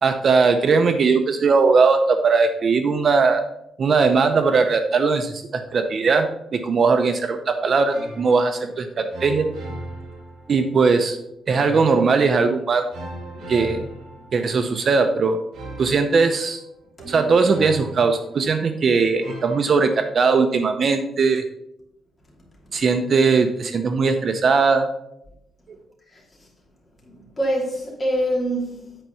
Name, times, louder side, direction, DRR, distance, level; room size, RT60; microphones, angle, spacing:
voice 1, 0.0-3.4 3.8-9.5 10.5-11.2 11.5-12.9 13.5-13.9 14.3-15.4 15.8-16.6 17.1-21.4 22.7-24.9, right 4 dB, 40° right, 0.6 m, -19 dB
sound 1, 7.9-8.8 9.1-10.8 11.5-12.5 12.9-14.8 15.5-18.8 19.2-20.1, right 1 dB, 65° right, 2.7 m, -38 dB
voice 2, 26.1-26.5 27.0-29.0, equal, 20° left, 2.7 m, -26 dB
9.0 x 4.5 x 5.5 m
cardioid pair, 150°, 0 cm